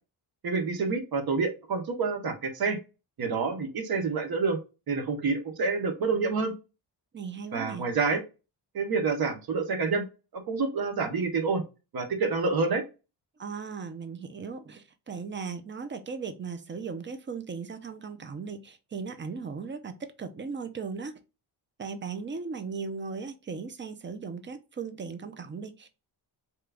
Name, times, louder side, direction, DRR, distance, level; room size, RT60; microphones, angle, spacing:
voice 1, 0.4-2.8 3.2-4.6 4.9-6.5 7.5-8.2 8.7-10.0 10.3-11.6 11.9-12.8, right 4 dB, 55° right, 1.0 m, -28 dB
voice 2, 7.1-7.9 13.4-19.9 20.2-21.1 21.8-25.9, right 5 dB, 25° right, 0.5 m, -37 dB
3.0 x 2.3 x 3.3 m
cardioid pair, 120°, 43 cm